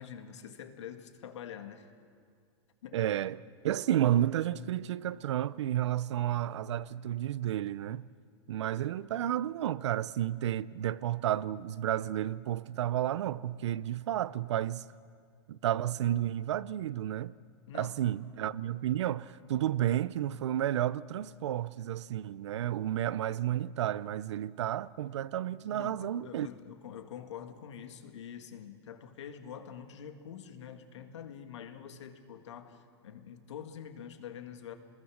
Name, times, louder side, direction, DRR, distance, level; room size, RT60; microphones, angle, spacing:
voice 1, 0.0-1.9 2.8-3.0 17.7-18.0 25.7-34.7, left 8 dB, 85° left, 2.1 m, -46 dB
voice 2, 2.9-8.1 8.5-14.9 15.5-17.3 17.7-26.5, right 12 dB, 80° right, 0.7 m, -31 dB
27.0 x 20.5 x 6.5 m
supercardioid pair, 165°, 15 cm